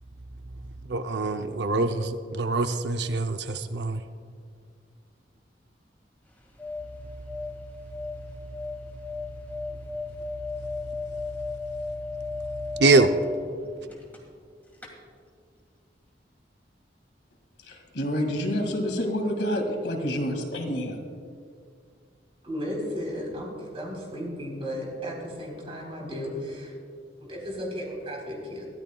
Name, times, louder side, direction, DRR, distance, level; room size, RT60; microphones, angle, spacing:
voice 1, 0.9-4.0 12.8-13.1, right 3 dB, 75° right, 8 dB, 0.6 m, -24 dB
sound 1, 6.3-14.5 14.7-14.9, left 3 dB, 10° left, 1.9 m, -36 dB
voice 2, 17.6-21.0, equal, 85° left, 2 dB, 2.2 m, -28 dB
voice 3, 22.4-26.7 27.2-28.7, equal, 35° right, -2 dB, 3.8 m, -34 dB
22.5 x 13.5 x 2.3 m, 2.2 s
head